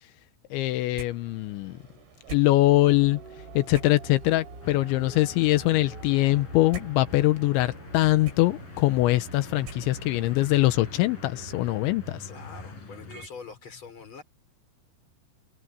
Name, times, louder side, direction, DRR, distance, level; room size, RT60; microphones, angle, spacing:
voice 1, 0.5-1.8 2.3-3.2 3.5-12.3, left 17 dB, 85° left, 3.2 m, -23 dB
sound 1, 0.9-10.3, right 5 dB, 75° right, 8.3 m, -48 dB
sound 2, 2.6-12.6, right 2 dB, 25° right, 5.1 m, -46 dB
Town city center trafic, 4.6-13.3, left 3 dB, 45° left, 9.6 m, -45 dB
voice 2, 12.3-14.2, left 5 dB, 25° left, 5.1 m, -44 dB
omnidirectional pair, 5.3 m